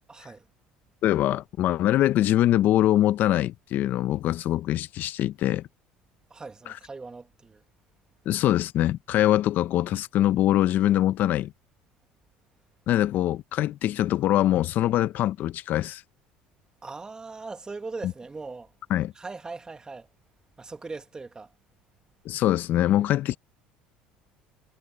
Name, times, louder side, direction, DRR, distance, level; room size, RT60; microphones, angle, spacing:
voice 1, 0.1-0.5 6.3-7.6 16.8-18.7 19.1-20.1 20.6-21.5, right 3 dB, 20° right, 2.1 m, -40 dB
voice 2, 1.0-5.7 6.7-6.8 8.3-11.5 12.9-16.0 18.0-18.1 18.9-19.1 22.2-23.4, left 13 dB, 60° left, 0.9 m, -23 dB
hypercardioid pair, 75°, 4 cm